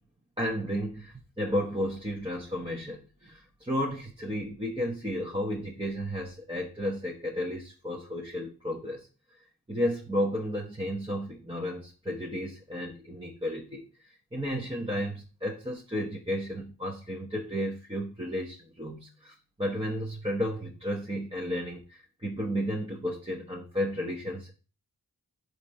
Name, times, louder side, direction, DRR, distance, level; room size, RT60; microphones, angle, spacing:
voice 1, 0.4-9.1 9.7-24.5, equal, 15° right, -2 dB, 1.2 m, -33 dB
4.4 x 4.2 x 5.2 m, 0.35 s
cardioid pair, 45°, 40 cm